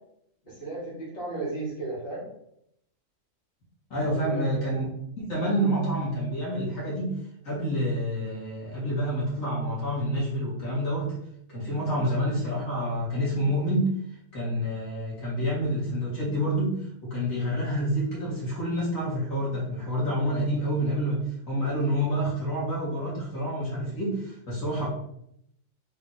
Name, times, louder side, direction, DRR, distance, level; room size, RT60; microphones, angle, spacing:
voice 1, 0.5-2.2 4.1-4.5 11.7-11.9, right 3 dB, 60° left, -6 dB, 1.8 m, -35 dB
voice 2, 3.9-4.8 5.2-7.2 7.4-11.2 11.5-13.9 14.3-24.9, equal, 90° left, -7 dB, 2.1 m, -28 dB
3.7 x 2.8 x 3.9 m, 0.75 s
omnidirectional pair, 1.4 m